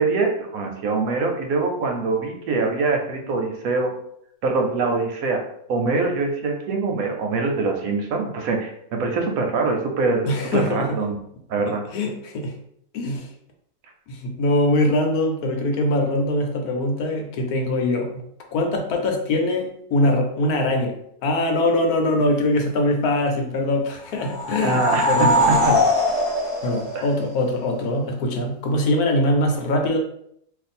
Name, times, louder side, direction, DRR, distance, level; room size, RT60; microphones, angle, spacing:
voice 1, 0.0-4.0 4.4-5.4 5.7-11.1 11.5-11.8 24.6-25.8 26.9-27.0, right 3 dB, 75° right, 3 dB, 1.0 m, -23 dB
voice 2, 10.2-10.9 11.9-12.5 12.9-13.3 14.1-18.2 18.5-20.9 21.2-25.8 26.6-30.0, left 1 dB, 75° left, 3 dB, 1.1 m, -22 dB
sound 1, 24.1-27.7, equal, 25° left, 0.6 m, -21 dB
2.5 x 2.5 x 4.1 m, 0.70 s
omnidirectional pair, 1.6 m